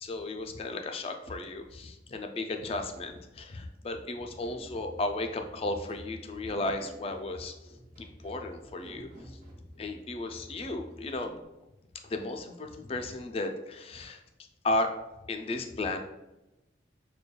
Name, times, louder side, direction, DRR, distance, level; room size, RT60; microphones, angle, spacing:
voice 1, 0.0-7.5 8.0-9.4 9.8-11.3 12.0-14.2 14.6-14.9 15.3-16.0, left 2 dB, 30° left, 5 dB, 0.3 m, -34 dB
sound 1, 4.4-11.4, equal, 45° right, 1.1 m, -50 dB
6.5 x 2.2 x 2.2 m, 0.98 s
head